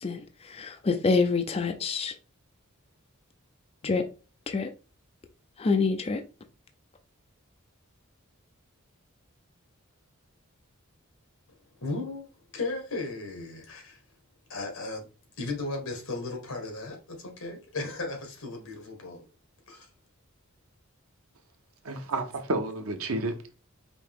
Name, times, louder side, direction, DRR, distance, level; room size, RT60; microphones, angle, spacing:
voice 1, 0.0-2.1 3.8-4.1 4.5-4.7 5.6-6.2, left 4 dB, 30° left, 0.4 m, -26 dB
voice 2, 11.8-12.3 12.5-14.0 14.5-15.1 15.4-19.3 19.7-19.9, left 2 dB, 70° left, 1.6 m, -35 dB
voice 3, 21.8-23.5, right 2 dB, 85° right, 0.9 m, -31 dB
5.0 x 2.9 x 3.6 m
head